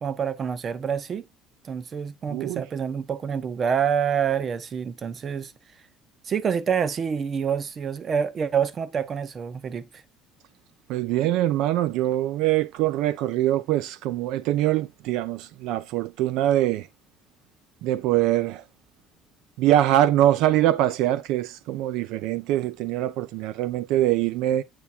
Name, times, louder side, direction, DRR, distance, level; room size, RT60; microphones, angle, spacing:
voice 1, 0.0-1.2 1.6-5.5 6.2-10.0, right 7 dB, 30° right, 0.7 m, -27 dB
voice 2, 2.3-2.6 10.9-16.9 17.8-18.6 19.6-24.6, right 13 dB, 70° right, 0.5 m, -23 dB
8.7 x 3.5 x 4.2 m
cardioid pair, 165°, 0 cm